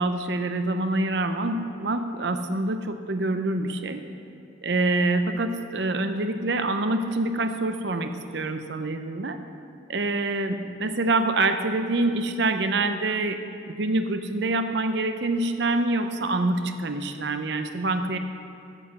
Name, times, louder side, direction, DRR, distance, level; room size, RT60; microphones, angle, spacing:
voice 1, 0.0-4.0 4.6-9.4 9.9-13.4 13.8-18.2, right 2 dB, 60° right, 8 dB, 0.7 m, -26 dB
9.0 x 8.1 x 7.5 m, 2.5 s
head